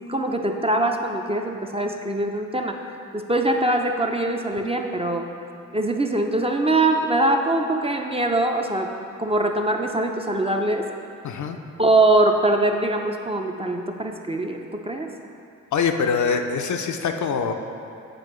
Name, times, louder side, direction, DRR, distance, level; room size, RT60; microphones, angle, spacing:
voice 1, 0.1-2.8 3.1-5.2 5.7-8.9 9.2-10.9 11.8-15.1, right 2 dB, 15° right, 3 dB, 0.5 m, -22 dB
voice 2, 11.2-11.6 15.7-17.5, left 5 dB, 55° left, 5 dB, 0.5 m, -24 dB
7.7 x 4.5 x 3.1 m, 2.5 s
supercardioid pair, 45°, 34 cm